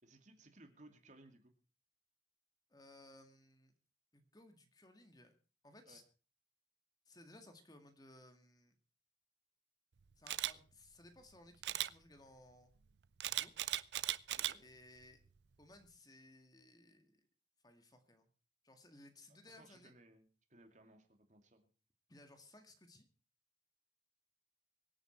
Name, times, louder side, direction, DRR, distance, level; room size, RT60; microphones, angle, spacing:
voice 1, 0.0-1.5 5.9-6.0 14.3-14.6 19.3-21.7, right 2 dB, 45° right, 5 dB, 2.6 m, -62 dB
voice 2, 2.7-3.7 4.1-5.3 5.6-6.0 7.1-8.8 10.2-12.7 13.2-13.5 14.6-15.2 15.6-17.3 17.6-18.3 18.6-19.9 22.1-23.1, left 1 dB, 20° left, 6 dB, 2.0 m, -61 dB
Camera, 10.3-10.5 11.6-11.9 13.2-14.5 15.0-15.3, right 13 dB, 80° right, 0.6 m, -37 dB
24.0 x 9.0 x 4.5 m, 0.35 s
head